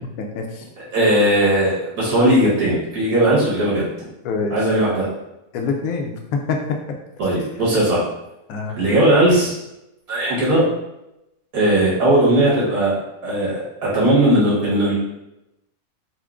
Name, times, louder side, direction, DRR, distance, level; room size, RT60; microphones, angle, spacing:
voice 1, 0.2-0.6 4.2-4.6 5.5-6.8 8.5-8.8, left 4 dB, 75° left, 2 dB, 1.0 m, -25 dB
voice 2, 0.9-3.8 4.5-5.1 7.2-8.0 8.8-9.5 10.1-10.7 11.5-13.0 13.2-15.0, right 1 dB, 85° right, -7 dB, 1.6 m, -18 dB
4.2 x 2.1 x 2.4 m, 0.89 s
omnidirectional pair, 1.5 m